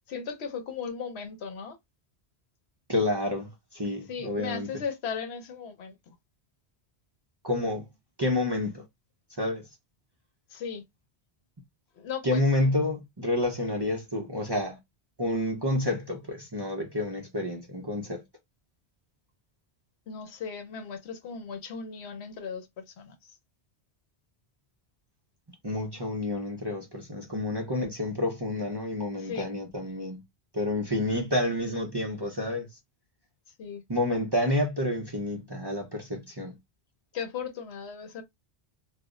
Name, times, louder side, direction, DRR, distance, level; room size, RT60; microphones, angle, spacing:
voice 1, 0.1-1.8 4.1-6.2 10.5-10.8 12.0-12.7 20.1-23.1 29.2-29.5 33.6-33.8 37.1-38.2, left 6 dB, 80° left, 1.0 m, -37 dB
voice 2, 2.9-4.7 7.4-7.9 8.2-8.8 9.4-9.7 12.2-14.8 15.2-18.2 25.6-30.2 30.5-32.7 33.9-36.6, left 1 dB, 30° right, 0.5 m, -29 dB
2.3 x 2.0 x 3.5 m
omnidirectional pair, 1.1 m